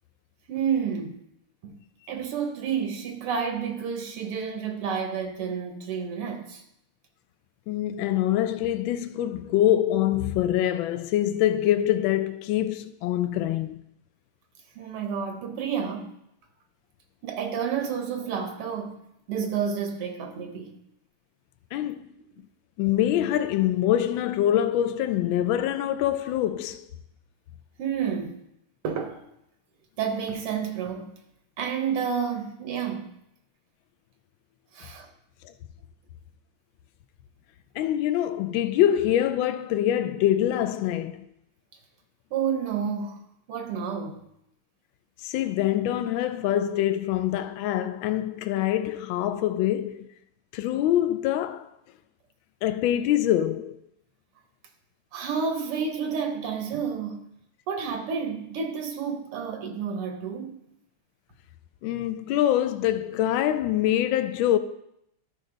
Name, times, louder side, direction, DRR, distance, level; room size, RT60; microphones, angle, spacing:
voice 1, 0.5-1.2 1.6-1.8 2.1-6.6 14.8-16.1 17.2-19.0 19.3-20.7 27.8-28.4 28.8-29.2 30.0-31.2 31.6-33.2 34.7-35.1 42.3-43.2 43.5-44.2 55.1-57.2 57.7-60.6, right 7 dB, 90° right, 2.1 m, -30 dB
voice 2, 7.7-13.8 21.7-22.0 22.8-26.8 35.4-35.5 37.7-41.2 45.2-50.1 50.5-51.7 52.6-53.8 61.8-64.6, left 12 dB, 75° left, 1.2 m, -24 dB
12.5 x 5.2 x 3.9 m
omnidirectional pair, 2.4 m